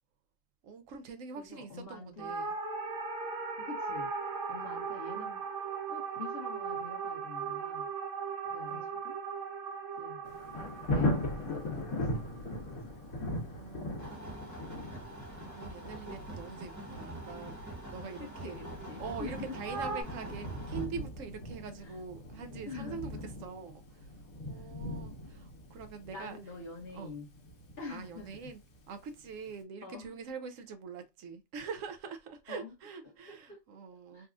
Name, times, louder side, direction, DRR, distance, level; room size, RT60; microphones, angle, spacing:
voice 1, 0.6-2.6 4.6-4.8 8.7-8.9 13.6-14.8 15.5-18.6 19.0-24.2 24.5-26.4 26.9-27.1 27.9-28.6 28.9-34.3, right 5 dB, 75° right, 0.9 m, -44 dB
voice 2, 1.4-2.4 3.6-4.1 4.5-5.5 5.9-7.9 8.4-9.2 10.0-10.2 10.6-12.5 18.2-19.6 21.8-22.0 22.7-23.2 26.1-27.3 27.8-28.5 29.8-30.1 32.5-32.7 33.0-33.6 34.1-34.3, left 4 dB, 45° left, 1.2 m, -46 dB
sound 1, 2.2-12.7 19.6-20.0, right 5 dB, 55° right, 0.7 m, -38 dB
Thunder, 10.2-29.0 29.5-29.6, left 1 dB, 90° left, 1.4 m, -39 dB
sound 2, 14.0-20.9, right 1 dB, 15° right, 1.0 m, -45 dB
4.0 x 2.3 x 2.4 m
omnidirectional pair, 1.4 m